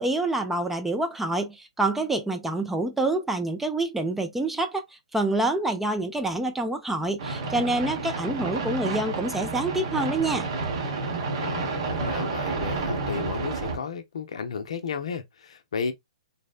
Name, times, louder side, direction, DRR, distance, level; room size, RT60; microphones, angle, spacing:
voice 1, 0.0-4.8 5.1-10.5, right 2 dB, 5° right, 0.3 m, -27 dB
sound 1, 7.2-13.8, right 3 dB, 50° right, 0.8 m, -30 dB
voice 2, 11.3-15.9, left 5 dB, 65° left, 0.5 m, -33 dB
2.7 x 2.1 x 2.3 m
hypercardioid pair, 130°, 3 cm